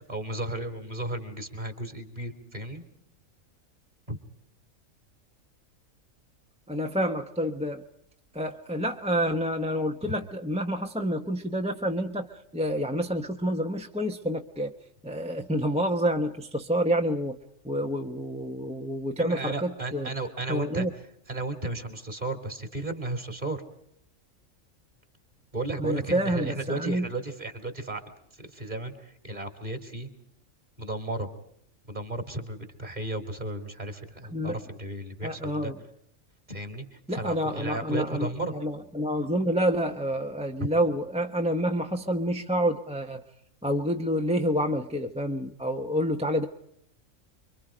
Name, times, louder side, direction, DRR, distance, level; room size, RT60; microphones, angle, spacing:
voice 1, 0.0-2.8 4.1-4.2 10.0-10.1 19.2-20.9 21.3-23.6 25.5-28.0 28.5-30.1 30.8-31.3 31.9-35.7 36.5-38.5, right 2 dB, 30° right, 7 dB, 3.1 m, -34 dB
voice 2, 6.7-7.8 8.3-14.7 15.0-17.4 17.6-20.1 20.4-20.9 25.8-27.1 34.3-34.6 35.2-35.7 37.1-43.2 43.6-46.5, equal, 5° right, 3 dB, 1.0 m, -28 dB
29.5 x 24.0 x 5.0 m, 0.72 s
omnidirectional pair, 1.4 m